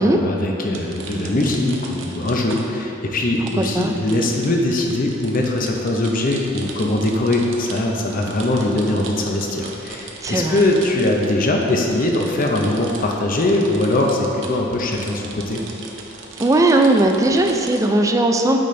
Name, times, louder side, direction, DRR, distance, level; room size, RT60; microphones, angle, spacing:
voice 1, 0.0-15.6, left 1 dB, 45° left, 0 dB, 0.7 m, -21 dB
sound 1, 0.7-2.9 3.4-17.9, right 4 dB, 70° right, 0.7 m, -38 dB
voice 2, 3.6-3.9 10.2-10.7 16.4-18.6, right 2 dB, 15° right, 3 dB, 0.3 m, -17 dB
8.4 x 4.2 x 3.2 m, 2.9 s
head